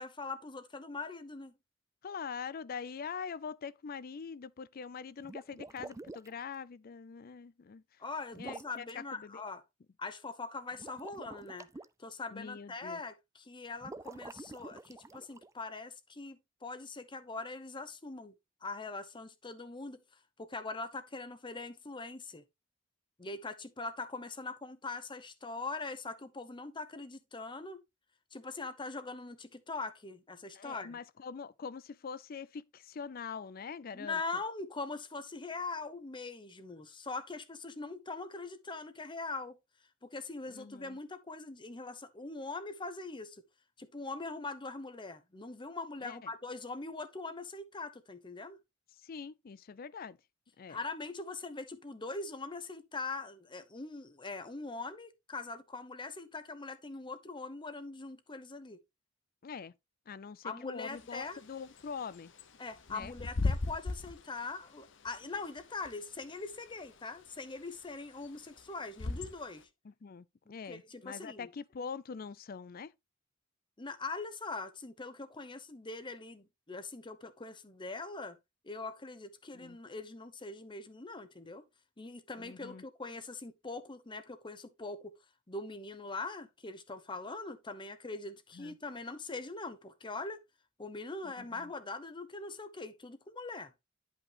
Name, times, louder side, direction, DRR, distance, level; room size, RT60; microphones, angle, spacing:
voice 1, 0.0-1.5 8.0-9.6 10.0-11.7 12.0-18.3 18.6-20.0 20.4-22.4 23.2-27.8 28.3-31.0 33.9-39.6 40.0-43.4 43.8-48.6 50.7-58.8 60.4-61.4 62.6-69.7 70.7-71.5 73.8-78.4 78.6-81.7 82.0-85.1 85.5-90.4 90.8-93.7, left 3 dB, 25° left, 0.9 m, -42 dB
voice 2, 2.0-7.8 8.3-9.4 12.3-13.0 30.5-34.2 40.5-41.0 46.0-46.3 49.0-50.2 50.6-50.8 59.4-59.7 60.1-62.3 62.9-63.1 70.0-72.9 79.5-79.8 82.4-82.8 88.5-88.8 91.2-91.7, left 6 dB, 50° left, 0.4 m, -44 dB
sound 1, 5.2-6.4 8.3-8.9 10.7-11.8 13.8-15.5, right 2 dB, 15° right, 0.3 m, -47 dB
Bird / Wind, 60.9-69.6, left 3 dB, 70° left, 0.9 m, -39 dB
10.5 x 5.2 x 3.0 m
head